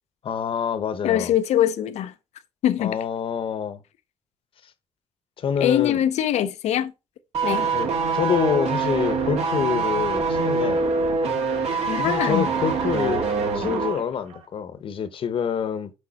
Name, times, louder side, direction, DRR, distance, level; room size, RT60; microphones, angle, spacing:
voice 1, 0.2-1.3 2.8-3.8 5.4-6.0 7.7-10.8 12.0-13.3 13.5-15.9, left 7 dB, 50° left, 0.9 m, -26 dB
voice 2, 1.0-2.1 2.6-3.0 5.6-6.9 7.4-7.7 11.9-12.5, left 11 dB, 80° left, 0.6 m, -22 dB
sound 1, 7.3-14.0 14.3-14.4, right 4 dB, 75° right, 1.9 m, -24 dB
6.5 x 5.2 x 4.1 m
cardioid pair, 140°, 11 cm